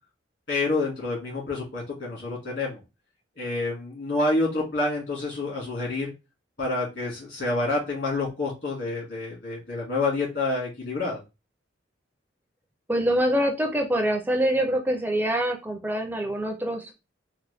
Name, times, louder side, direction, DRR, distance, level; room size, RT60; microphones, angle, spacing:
voice 1, 0.5-2.8 3.4-6.1 6.6-11.2, left 2 dB, 60° left, -3 dB, 2.0 m, -28 dB
voice 2, 12.9-16.9, right 1 dB, 10° right, 3 dB, 0.4 m, -25 dB
3.8 x 2.1 x 3.3 m, 0.27 s
head